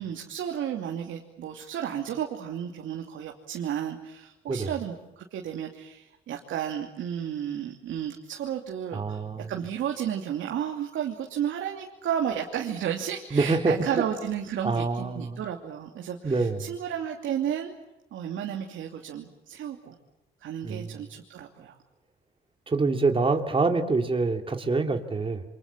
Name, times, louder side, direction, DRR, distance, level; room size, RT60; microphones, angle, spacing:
voice 1, 0.0-9.2 9.5-17.7 18.1-20.0 20.4-21.8, right 9 dB, 75° right, 2 dB, 2.8 m, -32 dB
voice 2, 8.9-9.5 13.3-14.0 14.6-15.4 16.2-16.7 20.6-21.0 22.7-25.4, right 3 dB, 25° right, 4 dB, 2.9 m, -26 dB
28.0 x 25.5 x 7.5 m, 0.99 s
cardioid pair, 90°, 20 cm